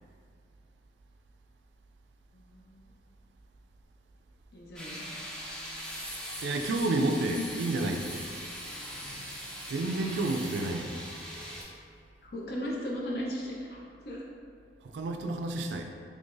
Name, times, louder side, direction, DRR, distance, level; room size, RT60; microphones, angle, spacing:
voice 1, 2.3-2.8 4.5-5.1 7.3-7.5 12.2-14.2, left 1 dB, 60° left, -3 dB, 0.6 m, -37 dB
sound 1, 4.8-11.6, equal, 5° left, 0.4 m, -40 dB
voice 2, 6.4-8.3 9.7-11.0 14.8-15.9, right 2 dB, 80° right, 4 dB, 0.3 m, -30 dB
3.8 x 3.2 x 2.5 m, 2.3 s
head